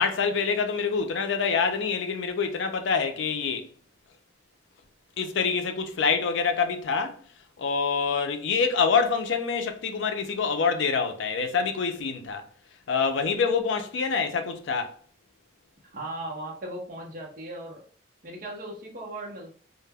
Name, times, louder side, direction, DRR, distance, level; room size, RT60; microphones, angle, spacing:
voice 1, 0.0-3.7 5.2-7.2 7.6-12.5 12.9-14.9, left 5 dB, 70° left, 0.4 m, -26 dB
voice 2, 15.8-17.8 18.2-19.5, right 1 dB, 45° right, 0.6 m, -37 dB
2.1 x 2.0 x 3.3 m
head